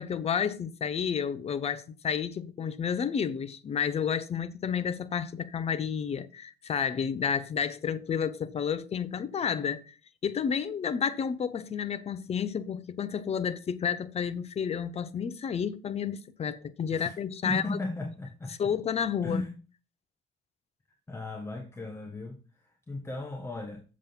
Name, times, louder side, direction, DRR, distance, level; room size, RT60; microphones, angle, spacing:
voice 1, 0.0-9.9 10.2-17.8 18.6-19.4, left 7 dB, 40° left, 0.9 m, -31 dB
voice 2, 17.4-18.7 19.2-19.6 21.1-23.8, left 2 dB, 15° left, 1.3 m, -36 dB
7.4 x 7.4 x 5.6 m
cardioid pair, 110°, 17 cm